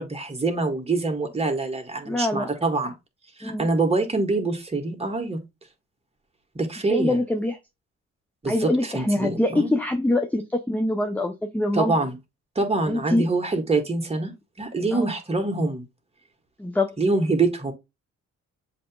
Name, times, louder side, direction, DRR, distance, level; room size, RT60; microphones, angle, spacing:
voice 1, 0.0-2.9 3.4-5.4 6.5-7.1 8.4-9.7 11.7-12.2 12.5-14.3 14.6-15.8 17.0-17.7, right 3 dB, 20° right, 1.5 m, -25 dB
voice 2, 2.1-2.5 3.4-3.7 6.9-7.6 8.5-11.9 12.9-13.3 14.9-15.1 16.6-16.9, left 1 dB, 5° left, 0.5 m, -24 dB
7.5 x 3.0 x 2.2 m
cardioid pair, 90°, 30 cm